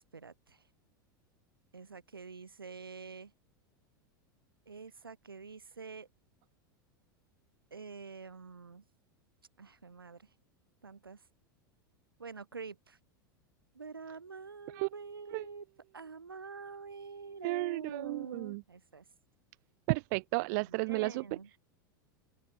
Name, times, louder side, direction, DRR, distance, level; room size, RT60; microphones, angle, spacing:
voice 1, 0.1-0.6 1.7-3.3 4.7-6.1 7.7-8.8 9.6-10.3 10.8-11.2 12.2-13.0 13.7-15.7 15.9-19.0 20.5-21.5, right 5 dB, 85° right, 7.0 m, -46 dB
voice 2, 17.4-18.6 19.9-21.2, right 29 dB, 55° right, 0.9 m, -33 dB
open air
figure-of-eight pair, 85°, 12 cm